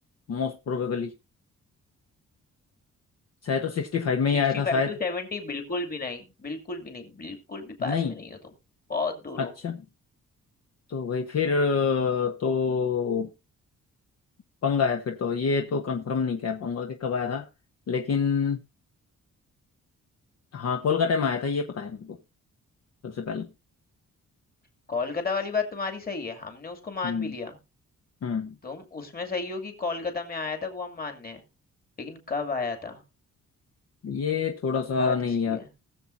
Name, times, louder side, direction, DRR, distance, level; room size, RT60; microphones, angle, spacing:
voice 1, 0.3-1.1 3.4-4.9 7.8-8.1 9.4-9.8 10.9-13.3 14.6-17.5 17.9-18.6 20.5-22.2 23.0-23.5 27.0-27.3 28.2-28.5 34.0-35.6, left 5 dB, 60° left, 1.1 m, -26 dB
voice 2, 4.3-8.4 8.9-9.5 24.9-27.6 28.6-31.4 32.0-33.0 35.0-35.7, left 4 dB, 30° left, 2.6 m, -32 dB
19.5 x 7.4 x 2.6 m
wide cardioid pair, 145°, 29 cm